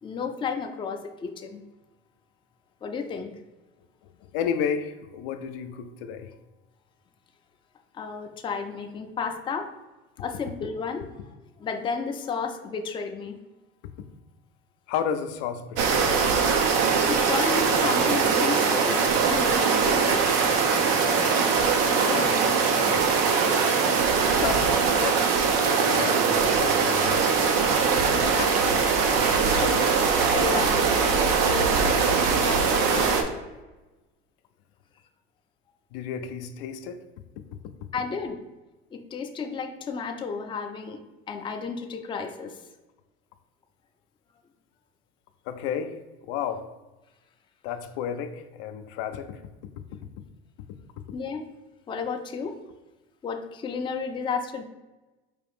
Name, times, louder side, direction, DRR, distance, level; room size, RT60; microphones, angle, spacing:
voice 1, 0.0-1.6 2.8-3.4 7.9-9.7 10.2-11.1 11.6-13.4 17.1-19.0 19.3-20.4 28.1-28.8 29.3-32.0 32.4-33.2 37.9-38.4 38.9-41.0 41.3-42.6 51.1-51.4 51.9-52.6 53.2-54.6, left 5 dB, 15° left, 4 dB, 0.4 m, -32 dB
voice 2, 4.2-6.3 14.9-16.1 20.7-20.9 21.2-21.4 22.0-23.5 24.2-25.4 25.8-27.5 28.1-28.2 35.9-37.0 45.5-46.7 47.6-49.4, left 8 dB, 70° left, 7 dB, 0.5 m, -33 dB
sound 1, 15.8-33.2, right 5 dB, 75° right, 0.7 m, -22 dB
4.6 x 2.4 x 3.4 m, 1.1 s
hypercardioid pair, 90°, 29 cm